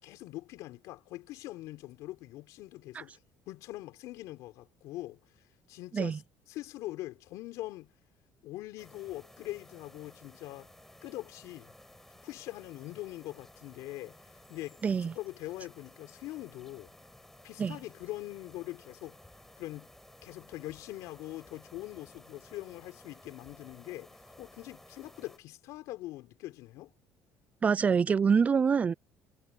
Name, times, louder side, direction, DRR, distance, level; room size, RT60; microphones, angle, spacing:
voice 1, 0.0-3.2 3.5-5.2 5.7-6.2 6.5-7.9 8.4-10.7 11.0-11.7 12.2-16.9 17.4-19.2 19.6-19.9 20.2-26.9, left 17 dB, 75° left, 4.6 m, -43 dB
sound 1, 8.8-25.4, left 1 dB, 5° left, 4.5 m, -56 dB
voice 2, 14.8-15.1 17.6-17.8 27.6-28.9, right 6 dB, 25° right, 0.3 m, -25 dB
cardioid pair, 110°, 5 cm